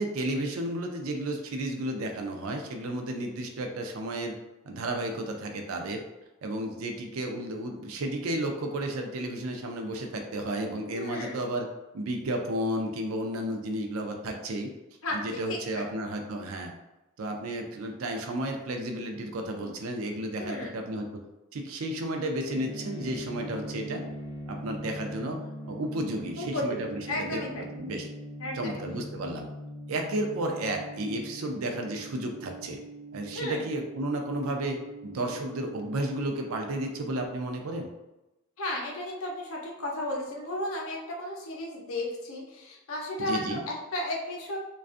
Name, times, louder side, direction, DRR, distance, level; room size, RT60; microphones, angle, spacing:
voice 1, 0.0-4.4 4.6-6.0 6.4-11.7 11.9-14.7 15.1-16.7 17.2-21.2 21.5-24.0 24.5-28.1 28.5-29.5 29.9-32.8 33.1-37.9 43.2-43.6, right 1 dB, 85° right, 3 dB, 0.4 m, -32 dB
voice 2, 10.9-11.4 15.0-15.8 20.4-20.7 26.4-26.8 27.1-27.7 28.4-29.0 33.3-33.6 38.6-44.6, left 1 dB, 85° left, -1 dB, 0.6 m, -34 dB
sound 1, 22.5-37.3, right 1 dB, 25° left, 0.4 m, -42 dB
2.4 x 2.3 x 2.5 m, 0.98 s
head